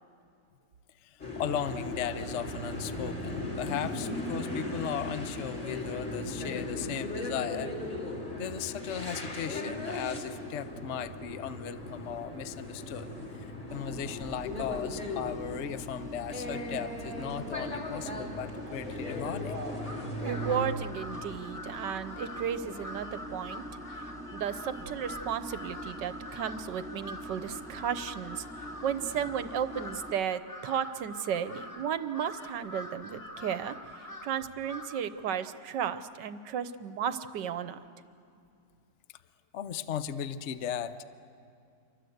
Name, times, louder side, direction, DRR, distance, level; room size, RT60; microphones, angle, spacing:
voice 1, 1.0-7.7 8.4-13.1 13.3-19.6 39.5-41.0, left 8 dB, 60° left, 12 dB, 0.7 m, -37 dB
sound 1, 1.2-20.7, left 1 dB, 35° left, 4.0 m, -37 dB
sound 2, 13.7-30.1, equal, 10° right, 1.6 m, -45 dB
Crow, 19.8-35.1, left 1 dB, 20° left, 1.3 m, -45 dB
voice 2, 20.2-23.6 24.3-28.4 28.8-33.8 34.2-37.8, right 8 dB, 65° right, 12 dB, 1.3 m, -34 dB
28.0 x 24.0 x 8.0 m, 2.5 s
omnidirectional pair, 2.3 m